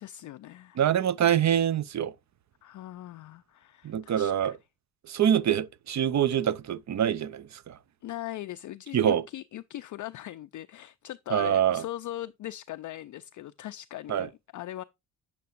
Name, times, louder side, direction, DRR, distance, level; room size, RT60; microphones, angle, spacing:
voice 1, 0.0-0.8 2.6-4.6 8.0-14.8, left 14 dB, 45° left, 0.5 m, -40 dB
voice 2, 0.8-2.1 3.8-4.5 5.1-7.8 8.9-9.2 11.3-11.8 14.1-14.3, right 9 dB, 40° right, 0.6 m, -25 dB
9.0 x 5.9 x 2.4 m
hypercardioid pair, 40°, 45 cm